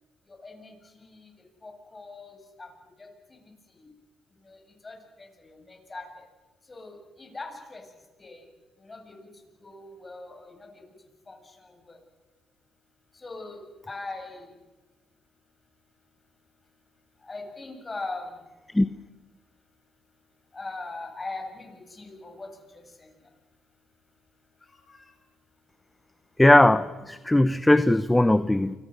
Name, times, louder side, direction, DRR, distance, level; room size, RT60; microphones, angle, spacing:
voice 1, 0.3-1.3 1.6-3.9 4.4-6.3 6.6-8.5 8.8-12.0 13.1-14.6 17.2-18.5 20.5-23.3 24.6-25.2 28.4-28.5, left 3 dB, 25° left, 3 dB, 7.4 m, -42 dB
voice 2, 26.4-28.7, left 1 dB, 10° left, 13 dB, 0.9 m, -19 dB
29.0 x 25.0 x 6.5 m, 1.3 s
cardioid pair, 90°, 0 cm